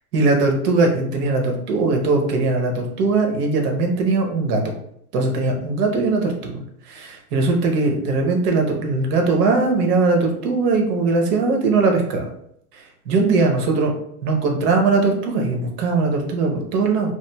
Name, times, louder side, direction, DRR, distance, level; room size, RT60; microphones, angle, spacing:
voice 1, 0.1-4.6 5.1-6.6 6.9-12.2 12.7-13.9 14.2-17.2, right 3 dB, 70° right, 2 dB, 0.9 m, -20 dB
3.1 x 2.3 x 2.2 m, 0.71 s
supercardioid pair, 120°, 48 cm